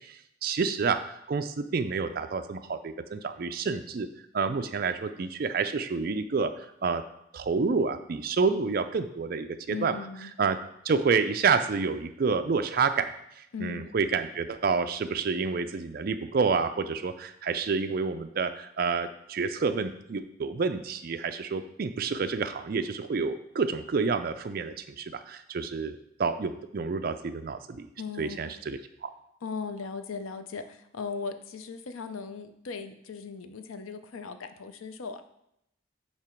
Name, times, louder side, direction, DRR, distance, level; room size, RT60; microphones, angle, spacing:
voice 1, 0.4-1.0 1.3-4.1 4.3-6.5 6.8-7.0 7.3-9.9 10.4-10.6 10.8-13.1 13.6-27.9 28.2-29.1, right 5 dB, 45° right, 8 dB, 0.4 m, -28 dB
voice 2, 9.7-10.3 13.5-13.9 28.0-28.6 29.4-35.2, left 5 dB, 85° left, 9 dB, 0.5 m, -38 dB
8.5 x 2.9 x 4.4 m, 0.78 s
head